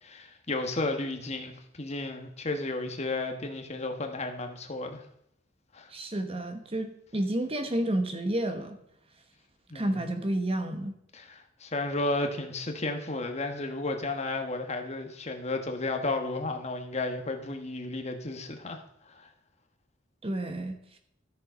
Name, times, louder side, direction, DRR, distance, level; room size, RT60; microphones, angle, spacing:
voice 1, 0.0-5.0 5.7-5.9 9.7-10.0 11.1-18.8 19.2-19.3, left 2 dB, 35° left, 5 dB, 1.2 m, -33 dB
voice 2, 5.9-8.8 9.7-10.9 20.2-20.8, right 1 dB, 30° right, 7 dB, 1.0 m, -30 dB
13.0 x 6.8 x 5.1 m, 0.75 s
head